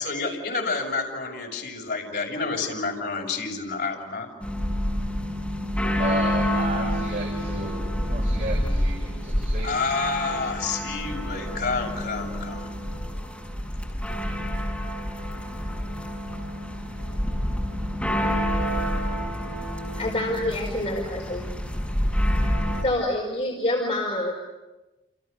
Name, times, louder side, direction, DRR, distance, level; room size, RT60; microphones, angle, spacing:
voice 1, 0.0-4.3 9.6-12.7, left 4 dB, 60° left, -1 dB, 6.8 m, -29 dB
sound 1, 4.4-22.8, equal, 5° left, 6.0 m, -28 dB
voice 2, 6.0-9.8, right 1 dB, 50° right, -2 dB, 5.9 m, -33 dB
voice 3, 20.0-21.5 22.1-22.2 22.8-24.3, left 1 dB, 35° left, -1 dB, 5.0 m, -27 dB
29.5 x 29.0 x 6.8 m, 1.1 s
head